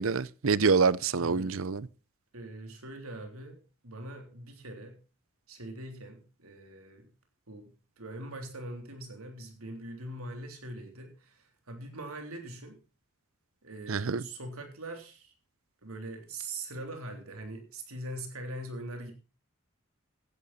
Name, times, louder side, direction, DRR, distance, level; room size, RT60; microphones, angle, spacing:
voice 1, 0.0-1.9 13.9-14.2, right 5 dB, 70° right, 0.6 m, -26 dB
voice 2, 1.1-1.6 2.3-5.0 5.5-7.1 7.5-7.7 8.0-12.8 13.6-15.3 15.8-19.1, right 1 dB, 85° right, 3.5 m, -42 dB
15.5 x 10.5 x 4.2 m
head